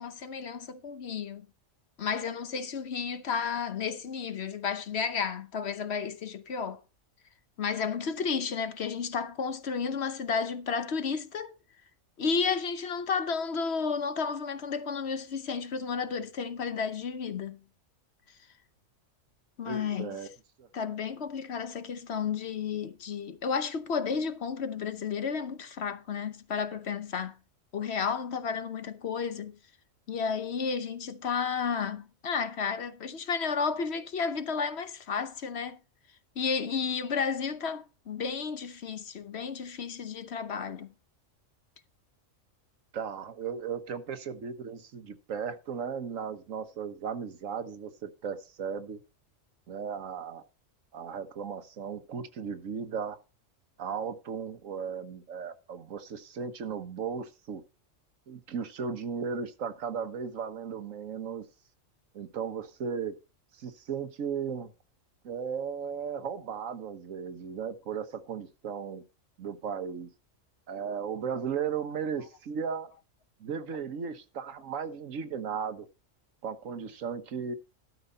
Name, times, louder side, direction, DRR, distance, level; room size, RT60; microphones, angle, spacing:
voice 1, 0.0-1.5 2.0-6.8 7.6-11.5 12.2-17.6 19.6-20.2 20.7-27.3 27.7-29.6 30.1-35.8 36.4-40.9, left 6 dB, 55° left, 1.1 m, -32 dB
voice 2, 19.6-20.3 20.6-20.7 42.9-49.0 49.7-50.4 50.9-53.2 53.8-57.6 58.3-61.4 62.1-63.2 63.5-64.7 65.2-69.0 69.4-70.1 70.7-72.9 73.4-75.9 76.4-77.5, right 6 dB, 80° right, 1.4 m, -36 dB
12.5 x 5.1 x 5.5 m
omnidirectional pair, 1.3 m